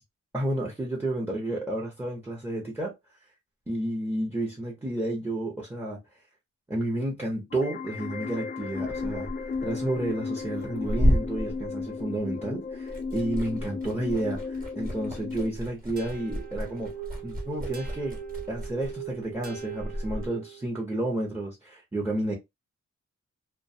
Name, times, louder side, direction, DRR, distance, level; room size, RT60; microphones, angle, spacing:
voice 1, 0.3-2.9 3.7-6.0 6.7-9.3 9.6-16.9 17.2-18.2 18.5-22.4, right 1 dB, 10° right, 0.7 m, -31 dB
sound 1, 7.5-15.5, left 4 dB, 35° left, 0.4 m, -35 dB
Liquid, 8.7-12.4 12.7-20.3, equal, 30° right, 1.1 m, -32 dB
sound 2, 16.0-20.7, right 10 dB, 70° right, 0.9 m, -41 dB
2.4 x 2.2 x 2.6 m
wide cardioid pair, 105°, 29 cm